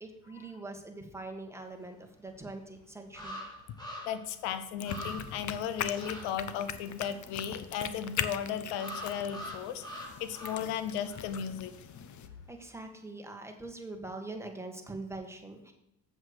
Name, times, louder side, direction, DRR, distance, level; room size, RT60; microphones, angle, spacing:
voice 1, 0.0-3.4 12.5-15.7, right 2 dB, 5° right, 3 dB, 1.7 m, -43 dB
sound 1, 2.3-2.4 3.1-4.3 4.6-4.7 4.8-5.5 5.9-6.3 8.7-10.8 11.0-11.3, left 1 dB, 10° left, 3.8 m, -43 dB
voice 2, 4.0-11.7, left 8 dB, 85° left, 12 dB, 0.9 m, -35 dB
sound 2, 4.8-12.3, left 8 dB, 45° left, 0.9 m, -41 dB
8.0 x 7.4 x 4.9 m, 0.85 s
supercardioid pair, 90°, 39 cm